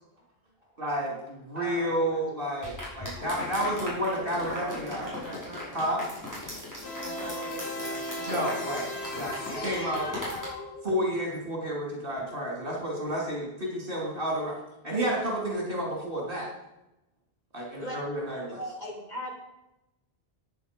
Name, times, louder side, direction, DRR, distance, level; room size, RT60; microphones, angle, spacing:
voice 1, 0.8-5.1 5.7-6.0 8.3-10.1 10.8-14.6 14.8-16.5 17.5-18.6, equal, 60° right, -2 dB, 3.3 m, -31 dB
voice 2, 1.5-2.2 4.1-5.8 7.0-8.4 9.0-9.1, equal, 40° right, -3 dB, 5.9 m, -41 dB
sound 1, 2.6-10.5, left 1 dB, 15° left, 5.6 m, -39 dB
sound 2, 6.8-11.2, left 1 dB, 90° left, 2.0 m, -36 dB
voice 3, 18.6-19.3, equal, 45° left, -1 dB, 3.1 m, -36 dB
14.0 x 9.4 x 5.3 m, 0.95 s
omnidirectional pair, 1.1 m